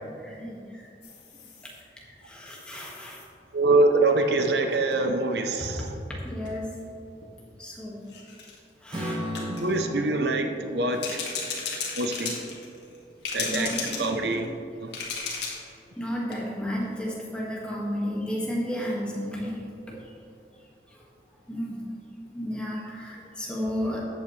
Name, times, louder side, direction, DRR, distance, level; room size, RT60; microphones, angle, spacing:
voice 1, 0.2-0.6 2.3-3.2 6.2-6.7 7.6-8.0 8.8-9.2 13.5-14.1 16.0-19.6 21.5-21.8 22.3-24.0, equal, 5° left, -4 dB, 1.8 m, -32 dB
sound 1, 1.0-1.8 2.5-3.2 4.7-4.9 5.9-6.0 6.3-6.5 7.2-7.3 8.1-8.6 9.3-9.8 10.9-13.0 13.2-14.4 14.9-15.7 16.0-16.1 16.3-16.4, left 5 dB, 75° left, 2.0 m, -35 dB
voice 2, 3.5-5.9 9.5-11.2 12.0-12.3 13.3-13.7 14.0-14.5 14.8-14.9, right 2 dB, 65° right, 5 dB, 0.7 m, -24 dB
Strum, 8.9-13.1, equal, 25° right, 1.4 m, -37 dB
13.5 x 8.6 x 3.2 m, 2.5 s
head